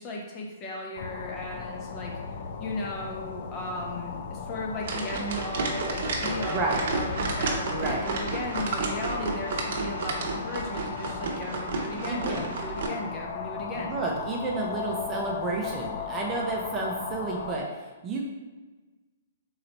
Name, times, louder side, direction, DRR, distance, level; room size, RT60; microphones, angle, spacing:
voice 1, 0.0-2.1 2.6-13.9, left 1 dB, 25° left, -1 dB, 0.7 m, -36 dB
sound 1, 1.0-17.6, left 6 dB, 50° left, 0.4 m, -36 dB
sound 2, 4.8-12.9, right 3 dB, 55° right, 0.8 m, -31 dB
voice 2, 6.5-6.8 7.7-8.1 12.1-12.4 13.7-18.3, right 3 dB, 20° right, -2 dB, 0.6 m, -31 dB
3.9 x 2.8 x 4.5 m, 1.3 s
hypercardioid pair, 155°, 0 cm